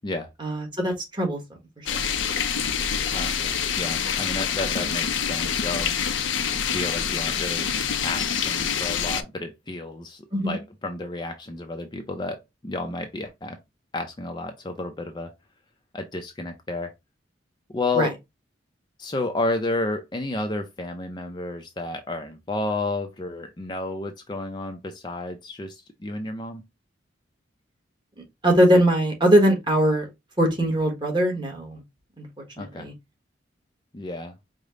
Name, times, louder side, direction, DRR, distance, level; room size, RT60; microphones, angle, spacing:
voice 1, 0.4-1.4 1.8-1.9 10.3-10.6 17.9-18.1 28.4-30.1 30.4-31.8 32.2-32.3 32.6-32.9, right 1 dB, 25° right, 1.2 m, -21 dB
sound 1, 1.9-9.2, left 7 dB, 80° left, 0.6 m, -26 dB
voice 2, 3.1-5.9 6.7-7.7 8.0-13.6 13.9-15.3 15.9-16.9 17.7-18.1 19.0-26.6 32.6-32.9 33.9-34.3, left 2 dB, 25° left, 0.5 m, -31 dB
5.0 x 2.1 x 3.7 m
head